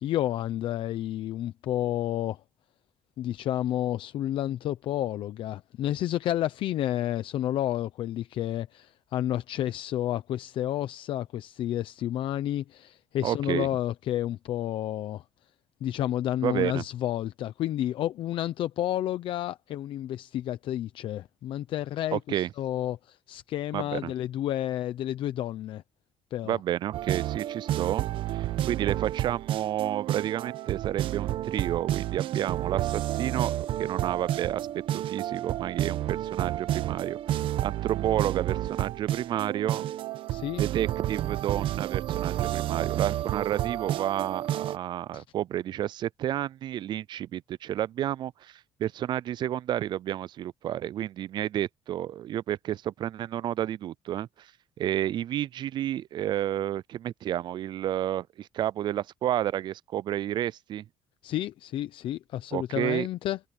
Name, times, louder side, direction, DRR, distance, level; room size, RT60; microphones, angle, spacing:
voice 1, 0.0-2.4 3.2-15.2 15.8-25.8 26.3-26.6 40.3-40.6 45.1-45.2 61.2-63.4, left 12 dB, 70° left, 0.9 m, -30 dB
voice 2, 13.2-13.7 16.4-16.8 22.1-22.5 23.7-24.1 26.4-34.7 34.9-37.2 37.6-39.9 40.6-54.5 54.8-60.8 62.5-63.1, right 12 dB, 55° right, 0.3 m, -31 dB
sound 1, 26.9-44.8, right 13 dB, 75° right, 1.2 m, -30 dB
cardioid pair, 90°, 9 cm